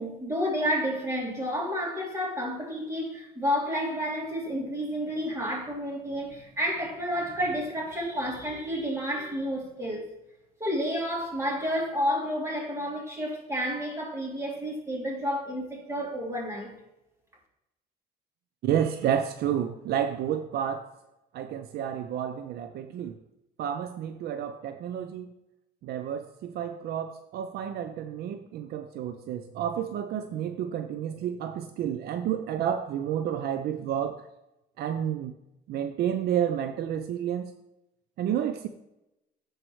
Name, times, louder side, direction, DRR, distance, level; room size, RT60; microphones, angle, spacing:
voice 1, 0.0-10.1 10.6-16.8, equal, 15° right, 2.9 m, -30 dB
voice 2, 18.6-20.9 21.3-23.2 23.6-25.3 25.8-34.3 34.8-35.4 35.7-37.5 38.2-38.7, right 9 dB, 70° right, 0.5 m, -30 dB
14.0 x 4.6 x 3.2 m
cardioid pair, 110°, 17 cm